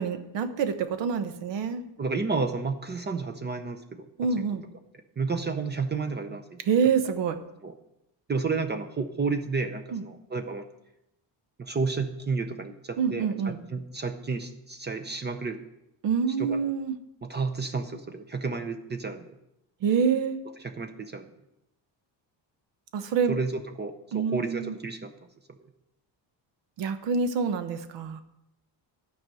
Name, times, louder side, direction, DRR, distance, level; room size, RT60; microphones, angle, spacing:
voice 1, 0.0-1.8 4.2-4.6 6.7-7.4 9.9-10.0 13.0-13.6 16.0-16.9 19.8-20.4 22.9-23.4 24.1-24.7 26.8-28.2, right 6 dB, 75° right, 10 dB, 1.1 m, -26 dB
voice 2, 2.0-4.1 4.4-4.5 5.2-6.6 7.6-7.7 8.3-10.6 11.6-15.6 16.4-16.6 17.2-19.3 20.6-21.3 23.3-25.1 25.6-25.7, right 4 dB, 25° right, 7 dB, 0.6 m, -31 dB
12.0 x 5.4 x 7.6 m, 0.85 s
cardioid pair, 170°, 44 cm